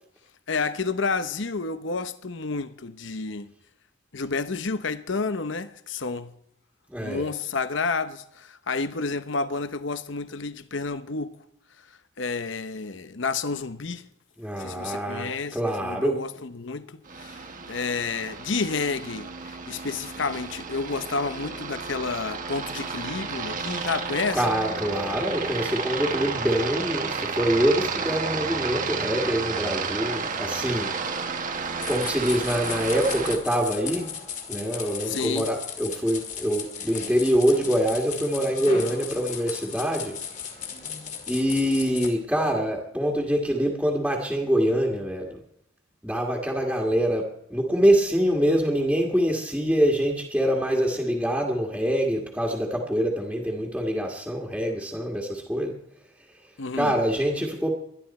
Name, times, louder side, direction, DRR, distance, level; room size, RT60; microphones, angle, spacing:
voice 1, 0.5-3.5 4.1-6.3 7.0-11.4 12.2-14.1 14.6-24.4 35.0-35.5 56.6-56.9, left 4 dB, 60° left, 0.8 m, -30 dB
voice 2, 6.9-7.3 14.4-16.2 24.3-31.2 31.9-34.1 34.5-40.1 41.3-45.4 46.0-55.7 56.8-57.7, equal, 5° right, 1.8 m, -25 dB
Aircraft, 17.1-33.4, right 5 dB, 40° right, 1.3 m, -32 dB
sound 1, 31.8-42.1, left 7 dB, 35° left, 2.2 m, -36 dB
21.0 x 11.5 x 4.3 m
head